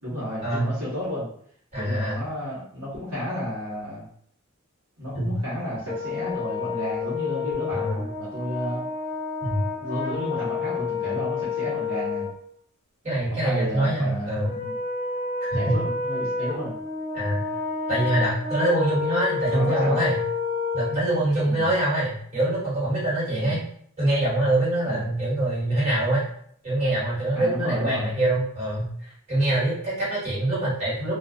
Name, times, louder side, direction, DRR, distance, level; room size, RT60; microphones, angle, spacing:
voice 1, 0.0-1.3 1.8-4.1 5.0-8.8 9.8-12.3 13.4-14.7 15.5-16.7 19.5-20.0 21.5-21.7 23.3-23.6 24.8-25.0 27.3-28.1, equal, 65° right, -10 dB, 1.1 m, -32 dB
voice 2, 1.7-2.2 5.1-5.4 7.7-8.0 9.4-9.7 13.0-14.5 15.4-15.7 17.1-17.4 17.9-20.2 20.7-23.6 24.0-26.2 26.6-31.1, right 1 dB, 30° right, -10 dB, 1.5 m, -24 dB
Brass instrument, 5.9-12.3 14.4-21.0, left 4 dB, 20° left, 0.8 m, -29 dB
2.3 x 2.3 x 2.4 m, 0.63 s
head